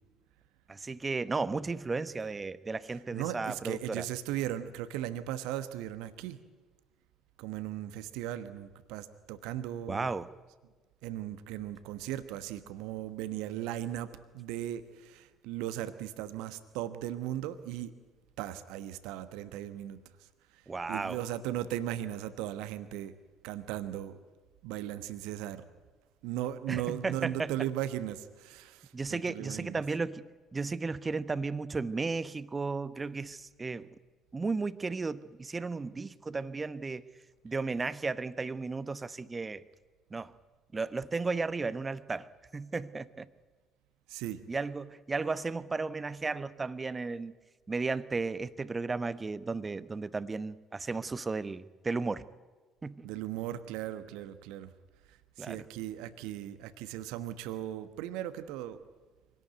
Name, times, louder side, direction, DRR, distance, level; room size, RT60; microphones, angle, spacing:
voice 1, 0.7-4.0 9.9-10.3 20.7-21.2 26.7-27.5 28.9-33.9 34.3-37.0 37.4-39.6 40.1-40.3 40.7-42.3 42.5-43.3 44.5-47.3 47.7-52.2 52.8-53.1 55.4-55.6, right 4 dB, 25° right, 15 dB, 1.1 m, -34 dB
voice 2, 3.1-6.4 7.4-10.1 11.0-17.9 18.4-20.0 20.9-23.1 23.4-24.2 24.6-25.6 26.2-29.8 44.1-44.4 53.0-54.7 55.4-58.8, right 12 dB, 65° right, 12 dB, 1.2 m, -37 dB
25.0 x 18.0 x 9.3 m, 1.3 s
figure-of-eight pair, 50°, 0 cm